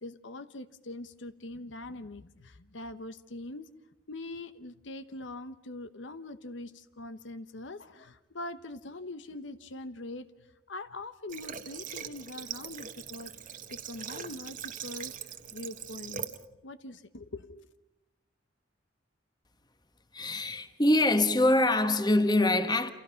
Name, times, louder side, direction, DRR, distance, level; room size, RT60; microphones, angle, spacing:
voice 1, 0.0-3.7 4.1-13.3 13.7-15.1 15.5-16.3 16.6-17.7, left 2 dB, 75° left, 1.0 m, -43 dB
Water / Water tap faucet, 11.3-16.4, right 8 dB, 45° right, 1.3 m, -41 dB
voice 2, 20.1-22.9, left 1 dB, 20° left, 1.5 m, -24 dB
29.0 x 28.0 x 5.8 m
head